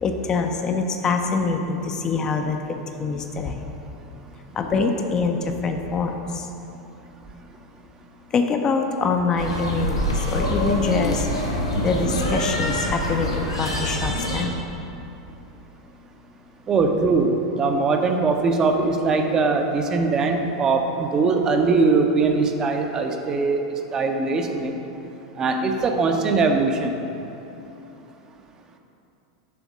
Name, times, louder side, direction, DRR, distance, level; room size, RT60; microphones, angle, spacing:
voice 1, 0.0-3.6 4.6-5.4 5.6-6.2 8.3-11.3 11.8-14.5, left 4 dB, 25° left, 4 dB, 0.4 m, -24 dB
sound 1, 9.4-14.4, equal, 80° left, 0.9 m, -25 dB
voice 2, 16.7-24.8 25.4-26.9, right 4 dB, 25° right, 4 dB, 0.6 m, -21 dB
6.9 x 3.5 x 6.1 m, 2.9 s
figure-of-eight pair, 85°, 3 cm